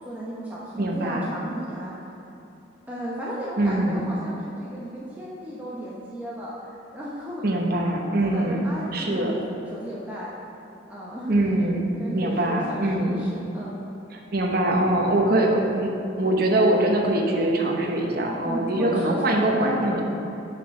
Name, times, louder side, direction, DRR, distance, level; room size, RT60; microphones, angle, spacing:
voice 1, 0.0-1.9 2.9-7.4 8.2-10.3 10.9-11.4 12.0-13.7 18.5-20.0, right 1 dB, 10° right, -7 dB, 0.9 m, -34 dB
voice 2, 0.8-1.3 3.6-4.0 7.4-8.7 8.9-9.3 11.3-13.1 14.1-15.9 16.2-20.0, right 1 dB, 50° right, 0 dB, 0.9 m, -23 dB
6.3 x 6.1 x 5.9 m, 2.9 s
head